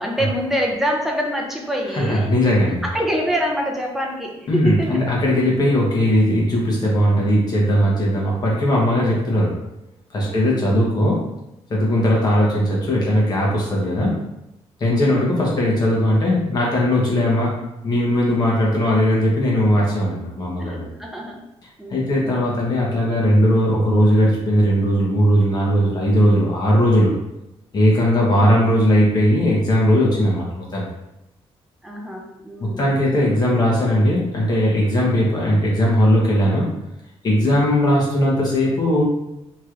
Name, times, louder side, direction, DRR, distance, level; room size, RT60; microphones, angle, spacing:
voice 1, 0.0-2.3 2.8-5.0 6.1-6.2 10.2-10.7 15.0-15.4 20.6-21.4 21.8-22.3 28.3-28.4 31.8-32.9, equal, 5° right, 0 dB, 0.5 m, -26 dB
voice 2, 1.9-2.8 4.5-9.5 10.1-11.2 11.7-14.2 14.8-17.5 17.8-20.9 21.9-27.1 27.7-30.8 32.6-36.6 37.2-39.0, equal, 40° left, -4 dB, 1.0 m, -18 dB
3.0 x 3.0 x 2.5 m, 0.90 s
wide cardioid pair, 150°, 11 cm